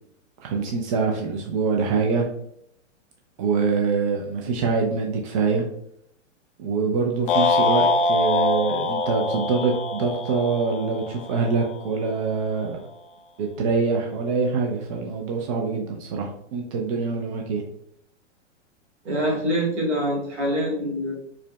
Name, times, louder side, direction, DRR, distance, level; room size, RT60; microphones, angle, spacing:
voice 1, 0.4-2.3 3.4-5.6 6.6-12.8 13.4-17.6, right 4 dB, 30° right, 0 dB, 0.4 m, -24 dB
sound 1, 7.3-11.6, left 2 dB, 45° left, 0.5 m, -23 dB
voice 2, 19.0-21.1, equal, 65° right, -2 dB, 1.4 m, -25 dB
4.7 x 2.1 x 2.2 m, 0.72 s
figure-of-eight pair, 105°, 37 cm